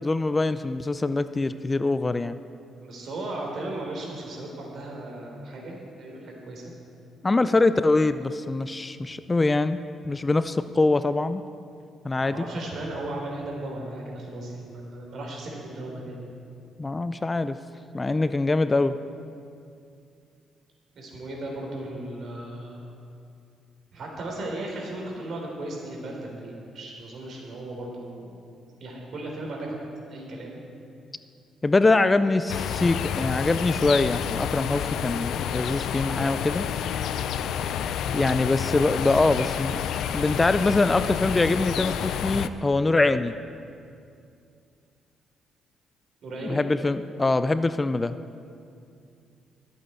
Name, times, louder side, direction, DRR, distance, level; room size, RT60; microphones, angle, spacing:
voice 1, 0.0-2.4 7.2-9.8 10.1-11.4 12.0-12.4 16.8-17.6 17.9-19.0 31.6-36.7 38.1-39.8 40.1-43.3 46.4-48.2, left 3 dB, 20° left, 12 dB, 0.4 m, -23 dB
voice 2, 2.8-6.7 12.2-16.3 21.0-22.8 23.9-28.3 28.8-29.8 30.1-30.6 46.2-46.6, right 1 dB, 60° right, -1 dB, 3.6 m, -36 dB
sound 1, 32.5-42.5, left 8 dB, 80° left, 0.5 m, -29 dB
22.5 x 8.4 x 4.4 m, 2.5 s
cardioid pair, 90°, 0 cm